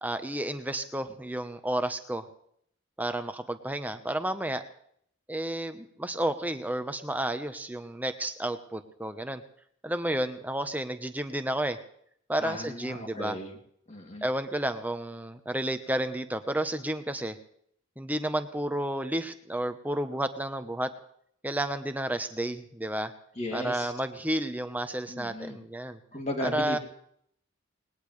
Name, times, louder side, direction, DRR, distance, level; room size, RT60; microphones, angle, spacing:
voice 1, 0.0-2.3 3.0-4.6 5.3-9.4 9.8-11.8 12.3-13.4 14.2-17.4 18.0-20.9 21.4-23.1 23.5-26.0 26.4-26.8, right 1 dB, 10° right, 8 dB, 1.0 m, -31 dB
voice 2, 12.4-13.6 13.9-14.3 23.3-23.9 25.1-25.6 26.1-26.8, left 1 dB, 35° left, 2 dB, 2.8 m, -35 dB
20.0 x 19.0 x 3.3 m, 0.68 s
head